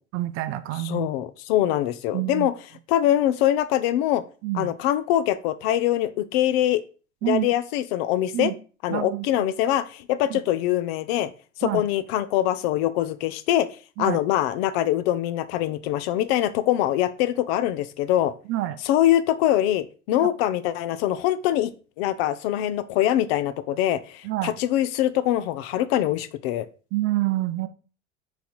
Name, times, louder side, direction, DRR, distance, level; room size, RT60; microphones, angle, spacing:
voice 1, 0.1-1.1 2.1-2.5 4.4-4.7 7.2-7.5 8.3-8.5 8.9-9.5 10.3-10.4 11.6-11.8 14.0-14.2 18.5-18.8 20.2-20.3 24.2-24.5 26.9-27.7, right 16 dB, 40° right, 11 dB, 0.4 m, -27 dB
voice 2, 0.8-2.5 2.9-4.2 4.5-6.8 7.3-8.5 8.8-11.3 11.6-13.7 14.0-18.3 18.9-21.7 22.0-26.7, left 12 dB, 60° left, 13 dB, 0.5 m, -23 dB
4.1 x 4.1 x 2.3 m, 0.37 s
hypercardioid pair, 75°, 36 cm